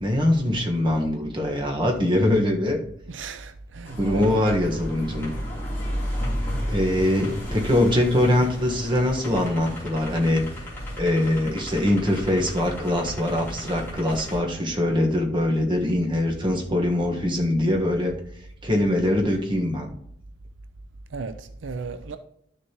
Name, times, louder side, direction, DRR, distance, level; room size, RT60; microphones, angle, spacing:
voice 1, 0.0-2.8 4.0-5.3 6.7-10.4 11.0-18.1 18.6-19.9, left 1 dB, 25° right, 1.4 m, -23 dB
voice 2, 3.1-4.4 21.1-22.2, right 4 dB, 80° right, 0.5 m, -35 dB
sound 1, 3.8-14.4, equal, 10° left, 3.4 m, -33 dB
12.0 x 6.6 x 3.0 m
head